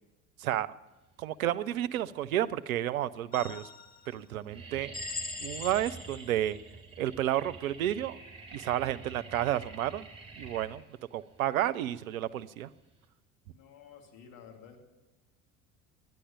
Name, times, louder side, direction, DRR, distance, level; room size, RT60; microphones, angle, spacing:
voice 1, 1.2-3.7 4.1-4.9 5.4-6.6 7.0-8.2 8.5-10.1 10.4-10.8 11.1-12.7, right 12 dB, 80° right, 14 dB, 0.6 m, -31 dB
sound 1, 1.9-2.5 3.1-3.2 3.5-3.9 4.1-13.1, right 3 dB, 15° right, 2.7 m, -48 dB
sound 2, 3.3-4.1 4.9-6.4, left 4 dB, 20° left, 1.0 m, -41 dB
voice 2, 13.5-14.8, left 7 dB, 55° left, 4 dB, 2.4 m, -52 dB
11.0 x 9.9 x 8.9 m, 1.1 s
figure-of-eight pair, 65°, 42 cm